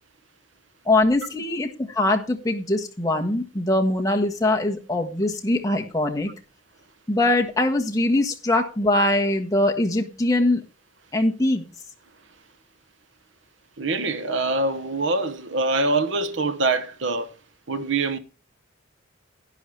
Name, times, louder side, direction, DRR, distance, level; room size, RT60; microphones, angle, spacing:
voice 1, 0.8-6.3 7.1-10.6 11.1-11.6, left 2 dB, 15° left, 1.4 m, -22 dB
voice 2, 13.8-17.3 17.7-18.2, right 3 dB, 65° right, 1.1 m, -24 dB
11.5 x 11.0 x 3.3 m
head